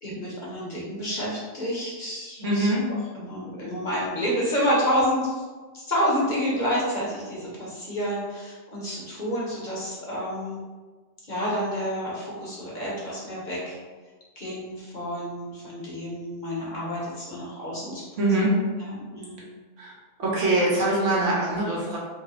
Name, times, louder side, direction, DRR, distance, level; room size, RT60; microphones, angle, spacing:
voice 1, 0.0-2.7 3.1-5.4 5.7-10.6 11.3-13.8 14.4-18.1 18.8-19.4, equal, 45° left, -6 dB, 0.9 m, -29 dB
voice 2, 2.4-2.9 18.2-18.5 19.8-19.9 20.2-22.0, right 2 dB, 80° right, -5 dB, 1.3 m, -23 dB
3.0 x 2.1 x 3.8 m, 1.3 s
omnidirectional pair, 1.3 m